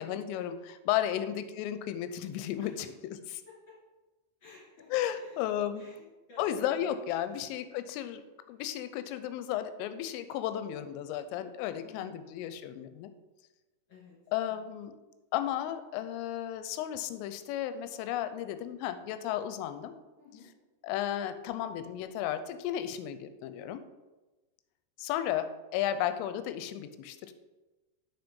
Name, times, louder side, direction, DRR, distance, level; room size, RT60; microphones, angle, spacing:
voice 1, 0.0-2.9 4.9-5.9 6.4-8.2 8.5-13.1 14.3-15.0 15.3-19.9 20.8-23.8 25.0-27.3, left 11 dB, 90° left, 11 dB, 3.1 m, -34 dB
voice 2, 2.6-2.9 3.5-3.7 4.4-5.4 5.8-7.0 7.3-7.5 7.9-8.0 11.8-12.3 13.9-14.2 14.5-14.7 20.2-20.5, left 4 dB, 40° left, -5 dB, 1.9 m, -54 dB
7.8 x 4.8 x 5.3 m, 1.2 s
omnidirectional pair, 5.6 m